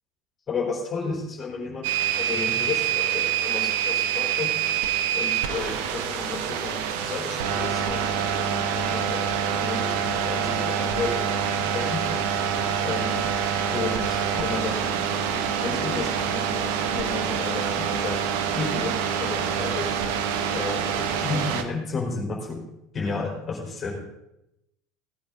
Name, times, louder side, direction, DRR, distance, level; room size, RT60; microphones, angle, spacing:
voice 1, 0.5-1.9 2.2-4.5 5.1-9.2 9.6-11.5 11.7-12.0 12.8-13.3 13.7-15.0 15.3-19.9 20.5-22.6 22.9-24.0, left 4 dB, 30° left, -2 dB, 4.0 m, -32 dB
sound 1, 1.8-21.6, right 8 dB, 70° right, 1.1 m, -26 dB
17.5 x 8.6 x 3.9 m, 0.85 s
hypercardioid pair, 70°, 0 cm